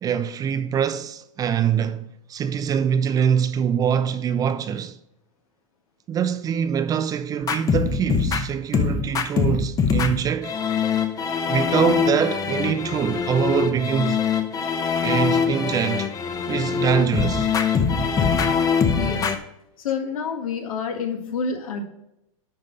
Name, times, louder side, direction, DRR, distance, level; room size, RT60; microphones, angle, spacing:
voice 1, 0.0-5.0 6.1-10.5 11.5-14.2 15.0-16.1 16.5-17.5, right 8 dB, 20° right, 0.4 m, -24 dB
sound 1, 7.4-19.4, left 6 dB, 20° left, 0.8 m, -23 dB
voice 2, 18.9-19.3 19.8-21.8, left 6 dB, 85° left, 1.7 m, -28 dB
11.0 x 4.0 x 5.1 m
hypercardioid pair, 130°, 17 cm